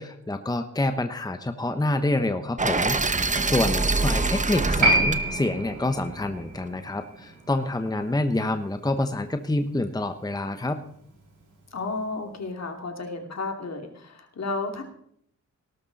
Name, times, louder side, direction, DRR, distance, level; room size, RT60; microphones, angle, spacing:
voice 1, 0.0-10.8, left 2 dB, 10° left, 8 dB, 1.0 m, -27 dB
sound 1, 2.6-6.6, right 3 dB, 25° right, 1.0 m, -26 dB
Piano, 4.8-11.8 12.0-12.1, right 1 dB, 85° right, 6.2 m, -29 dB
voice 2, 11.7-14.8, left 3 dB, 60° left, 4 dB, 2.8 m, -32 dB
19.0 x 12.0 x 4.1 m, 0.66 s
wide cardioid pair, 95°, 31 cm